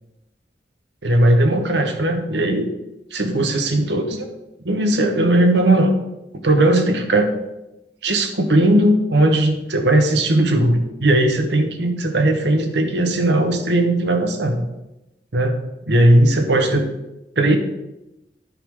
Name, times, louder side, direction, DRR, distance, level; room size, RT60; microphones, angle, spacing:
voice 1, 1.0-2.7 3.1-4.2 4.6-5.9 6.4-7.4 8.0-14.6 15.3-15.6 15.9-16.9 17.4-17.6, right 1 dB, 70° right, 5 dB, 1.2 m, -17 dB
10.0 x 3.8 x 6.3 m, 0.93 s
head